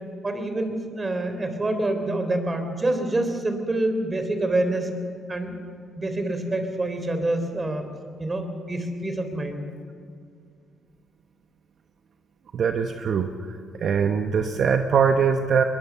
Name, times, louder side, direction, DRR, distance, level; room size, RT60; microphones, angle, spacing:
voice 1, 0.2-4.9 5.3-5.6 5.9-7.9 8.2-9.6, right 2 dB, 25° right, 7 dB, 3.5 m, -26 dB
voice 2, 12.5-15.6, right 6 dB, 60° right, 6 dB, 1.1 m, -22 dB
21.5 x 21.0 x 7.0 m, 2.1 s
cardioid pair, 90°, 0 cm